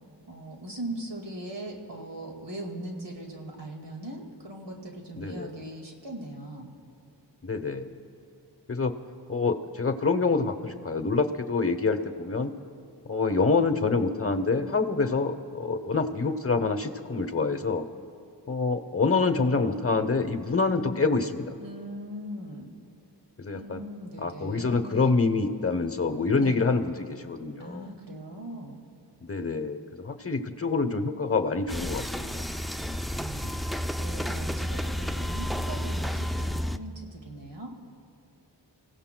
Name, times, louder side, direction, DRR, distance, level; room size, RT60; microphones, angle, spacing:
voice 1, 0.3-6.7 21.6-22.7 23.5-25.2 26.4-26.6 27.6-28.8 33.1-37.7, right 1 dB, 85° right, 1 dB, 2.1 m, -40 dB
voice 2, 5.1-5.6 7.4-7.9 8.7-8.9 9.3-12.5 13.0-17.8 18.5-21.6 23.4-23.8 24.2-27.9 29.2-32.5, left 4 dB, 30° left, 8 dB, 0.9 m, -26 dB
sound 1, 31.7-36.8, equal, ahead, 0.4 m, -31 dB
28.5 x 16.5 x 2.2 m, 2.5 s
cardioid pair, 45°, 42 cm